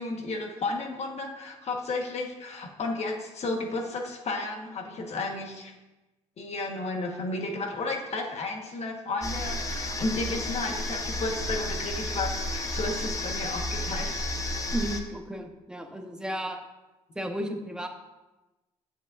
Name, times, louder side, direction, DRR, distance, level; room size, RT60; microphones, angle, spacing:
voice 1, 0.0-5.7 6.4-14.1, left 2 dB, 55° left, 2 dB, 1.4 m, -33 dB
sound 1, 9.2-15.0, left 1 dB, 25° left, 0.9 m, -32 dB
voice 2, 14.7-16.6 17.1-17.9, equal, 5° right, 3 dB, 1.0 m, -33 dB
8.3 x 7.3 x 2.6 m, 1.1 s
supercardioid pair, 75°, 13 cm